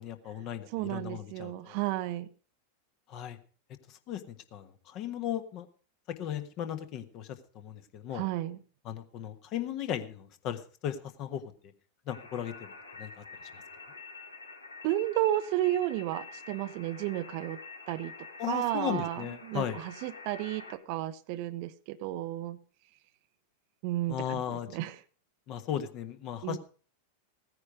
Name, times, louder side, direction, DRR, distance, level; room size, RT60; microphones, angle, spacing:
voice 1, 0.0-1.8 3.1-3.4 3.9-5.7 6.2-8.2 8.8-11.7 12.1-12.7 13.0-13.2 13.5-13.6 18.4-19.8 24.1-24.7 25.5-26.6, left 10 dB, 40° left, 9 dB, 1.3 m, -36 dB
voice 2, 0.7-2.3 8.1-8.6 14.8-17.6 17.9-18.1 18.5-22.6 23.8-24.9 26.4-26.6, right 14 dB, 45° right, 14 dB, 0.7 m, -32 dB
sound 1, 12.1-20.7, left 4 dB, 80° left, 1.9 m, -48 dB
16.0 x 9.8 x 4.9 m, 0.40 s
figure-of-eight pair, 90°, 0 cm